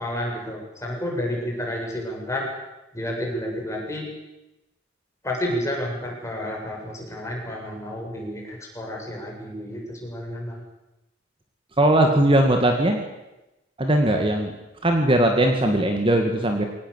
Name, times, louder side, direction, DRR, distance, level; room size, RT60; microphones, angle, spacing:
voice 1, 0.0-2.5 2.9-4.1 5.2-10.6, left 1 dB, 15° left, -1 dB, 7.1 m, -30 dB
voice 2, 11.8-13.0 13.8-14.5 14.8-16.6, right 1 dB, 30° right, 4 dB, 2.3 m, -19 dB
23.0 x 18.5 x 8.3 m, 0.97 s
head